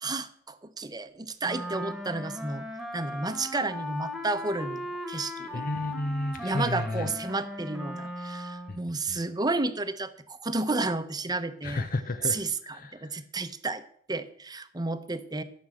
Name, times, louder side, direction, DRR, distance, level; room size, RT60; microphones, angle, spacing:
voice 1, 0.0-2.7 2.9-5.6 6.4-11.9 12.2-13.8 14.1-15.4, right 3 dB, 20° right, 12 dB, 0.8 m, -32 dB
Wind instrument woodwind instrument, 1.4-8.8, left 1 dB, ahead, 1.5 m, -38 dB
voice 2, 5.5-7.1 8.7-8.8 9.1-9.2 11.6-13.1, left 2 dB, 50° left, 8 dB, 0.7 m, -32 dB
13.0 x 6.4 x 7.7 m, 0.62 s
head